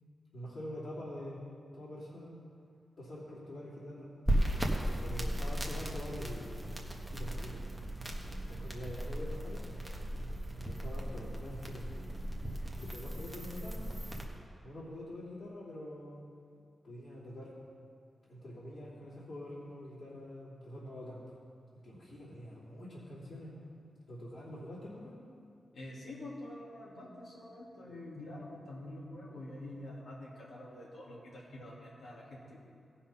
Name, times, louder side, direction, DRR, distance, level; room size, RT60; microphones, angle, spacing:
voice 1, 0.3-1.4 1.7-2.4 3.0-4.1 5.0-6.5 7.1-7.6 8.4-9.8 10.6-11.9 12.8-13.9 14.6-16.2 16.8-17.6 18.3-21.2 21.8-23.5 24.1-25.2, left 1 dB, 55° left, -11 dB, 3.1 m, -45 dB
sound 1, 4.3-14.2, right 1 dB, 5° right, 1.2 m, -36 dB
voice 2, 25.7-32.6, left 1 dB, 75° left, -6 dB, 2.4 m, -46 dB
17.0 x 5.7 x 5.7 m, 2.4 s
wide cardioid pair, 140°, 0 cm